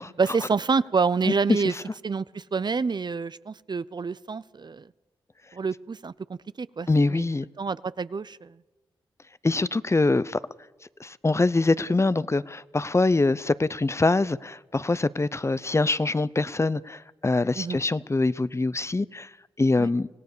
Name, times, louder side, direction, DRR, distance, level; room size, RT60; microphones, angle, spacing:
voice 1, 0.0-1.7 2.0-4.9 5.5-7.2 7.6-8.5 17.6-17.8 19.8-19.9, right 5 dB, 45° right, 0.6 m, -27 dB
voice 2, 1.5-1.8 6.9-7.5 9.4-10.4 11.0-19.3 19.6-20.1, left 3 dB, 30° left, 0.7 m, -24 dB
25.0 x 17.0 x 6.8 m
supercardioid pair, 45°, 10 cm